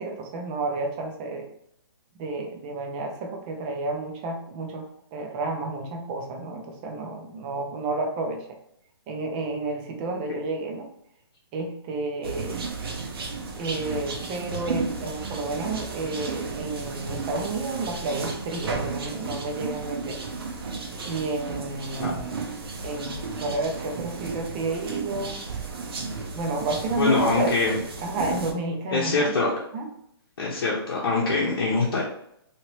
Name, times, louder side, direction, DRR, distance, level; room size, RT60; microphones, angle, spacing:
voice 1, 0.0-1.5 2.2-8.5 9.1-10.9 11.5-12.6 13.6-20.2 21.0-22.4 22.8-25.4 26.3-29.3 29.7-29.9, right 3 dB, 20° right, 2 dB, 0.5 m, -31 dB
sound 1, 12.2-28.5, right 4 dB, 65° right, 0.7 m, -33 dB
voice 2, 27.0-27.8 28.9-29.5 30.4-32.0, left 3 dB, 60° left, -5 dB, 0.8 m, -23 dB
2.9 x 2.8 x 3.0 m, 0.74 s
hypercardioid pair, 160°, 13 cm